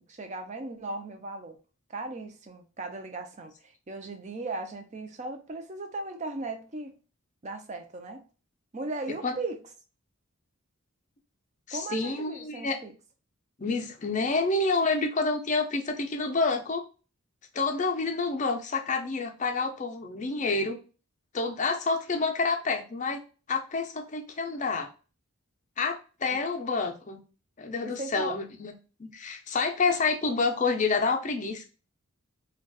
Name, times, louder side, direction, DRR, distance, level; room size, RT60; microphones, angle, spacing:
voice 1, 0.1-1.6 1.9-6.9 7.4-8.2 8.7-9.6 11.7-12.9 26.3-26.4 27.8-28.4, right 2 dB, 30° right, 5 dB, 0.5 m, -37 dB
voice 2, 11.7-12.8 13.6-16.8 17.5-20.8 21.3-23.2 23.5-24.9 25.8-27.2 27.6-28.7 29.0-31.6, left 3 dB, 35° left, 5 dB, 0.5 m, -28 dB
3.9 x 2.3 x 2.3 m, 0.34 s
head